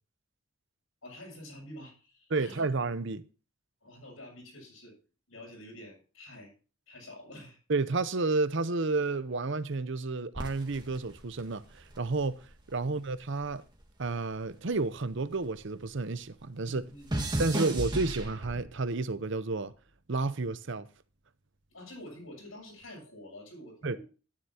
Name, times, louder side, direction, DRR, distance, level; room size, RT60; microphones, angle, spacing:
voice 1, 1.0-2.6 3.8-5.0 5.3-6.5 6.9-7.6 12.8-13.0 16.6-17.2 21.7-24.0, left 1 dB, 80° left, 7.4 m, -48 dB
voice 2, 2.3-3.2 7.7-12.4 12.7-13.6 14.0-16.8 17.4-19.7 20.1-20.9 23.8-24.0, right 3 dB, 60° right, 0.7 m, -31 dB
sound 1, 10.3-12.8 13.1-15.8 16.0-18.9 19.6-20.0, right 1 dB, 20° right, 2.0 m, -36 dB
12.5 x 11.0 x 2.8 m
head